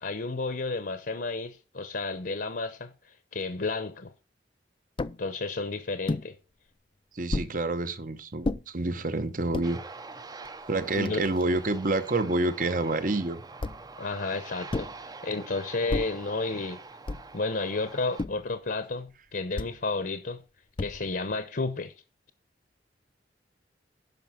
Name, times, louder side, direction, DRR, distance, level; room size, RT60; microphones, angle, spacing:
voice 1, 0.0-4.1 5.2-6.4 10.9-11.2 14.0-16.8 17.3-20.4 20.8-21.9, left 3 dB, 60° left, 0.9 m, -32 dB
sound 1, 5.0-5.2 6.1-6.3 7.3-7.6 8.4-8.6 9.3-9.7 10.5-10.6 10.8-11.8 13.6-14.0 14.7-15.0 15.9-16.2 17.1-17.4 18.2-18.5 19.6-19.8 20.8-21.2, left 2 dB, 30° left, 0.4 m, -32 dB
voice 2, 7.1-9.8 10.7-13.4, right 2 dB, 50° right, 1.0 m, -28 dB
Aircraft, 9.6-18.3, right 3 dB, 20° right, 0.6 m, -45 dB
10.5 x 5.8 x 5.6 m
head